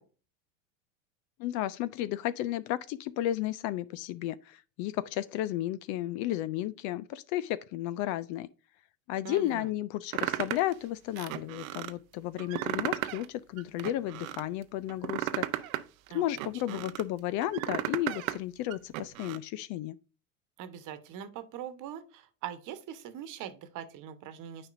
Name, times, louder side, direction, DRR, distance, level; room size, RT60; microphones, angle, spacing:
voice 1, 1.4-8.5 9.1-15.5 16.1-20.0, left 14 dB, 45° left, 0.5 m, -33 dB
voice 2, 9.2-9.7 16.1-16.8 20.6-24.7, right 9 dB, 45° right, 1.2 m, -42 dB
sound 1, 10.1-10.7 11.2-11.9 12.4-13.3 13.6-14.4 14.9-17.0 17.4-18.4 18.7-19.4, right 15 dB, 75° right, 0.7 m, -34 dB
9.6 x 5.1 x 2.6 m
hypercardioid pair, 95°, 42 cm